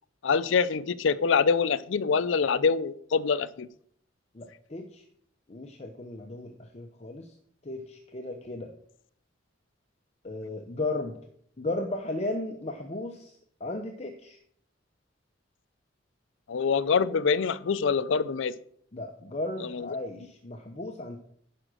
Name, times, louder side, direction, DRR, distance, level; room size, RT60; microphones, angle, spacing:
voice 1, 0.2-3.7 16.5-18.5 19.6-19.9, left 5 dB, 75° left, 0.5 m, -25 dB
voice 2, 4.3-5.0 5.5-7.4 7.6-8.7 10.2-11.2 11.6-14.4 18.9-21.2, left 2 dB, 35° left, 0.7 m, -35 dB
11.0 x 5.0 x 6.2 m
head